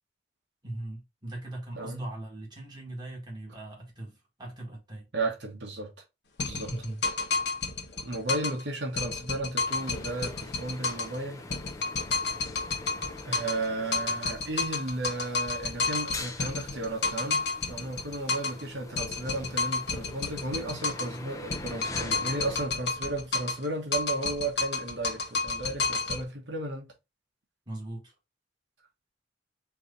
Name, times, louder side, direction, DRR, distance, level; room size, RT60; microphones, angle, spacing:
voice 1, 0.6-5.1 6.6-7.0 27.7-28.1, right 1 dB, 25° right, 1.8 m, -39 dB
voice 2, 1.8-2.1 5.1-5.9 6.5-6.7 8.0-11.5 13.2-26.9, right 2 dB, 75° right, 1.0 m, -34 dB
sound 1, 6.4-8.6 9.0-11.2 11.5-13.7 13.9-18.6 19.0-21.2 21.5-23.6 23.9-26.2, left 3 dB, 65° left, 1.0 m, -31 dB
sound 2, 9.7-22.7, left 2 dB, 20° left, 0.5 m, -44 dB
4.7 x 2.7 x 3.8 m
head